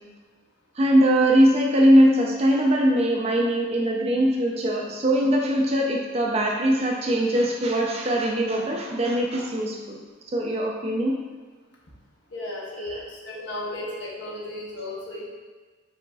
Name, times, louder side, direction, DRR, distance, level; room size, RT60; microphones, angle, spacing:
voice 1, 0.7-10.0 10.3-11.1 12.8-13.0, equal, 30° right, -1 dB, 0.4 m, -21 dB
voice 2, 12.3-15.2, left 1 dB, 55° left, -4 dB, 0.9 m, -35 dB
4.9 x 4.0 x 2.3 m, 1.3 s
head